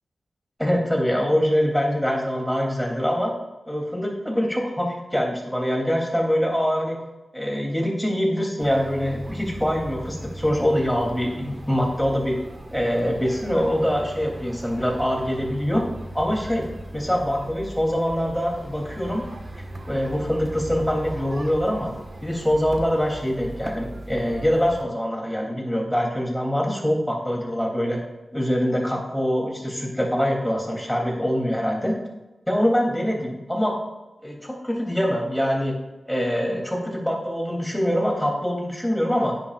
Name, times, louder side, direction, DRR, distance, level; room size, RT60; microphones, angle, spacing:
voice 1, 0.6-3.3 3.7-7.0 7.3-12.4 12.7-15.8 16.1-16.7 16.9-19.2 19.9-21.9 22.2-28.0 28.3-32.0 32.5-33.8 34.2-35.8 36.1-39.4, equal, 5° left, -1 dB, 3.0 m, -24 dB
sound 1, 8.6-24.8, right 1 dB, 45° right, 1.5 m, -38 dB
10.0 x 9.9 x 2.5 m, 1.1 s
cardioid pair, 50°, 0 cm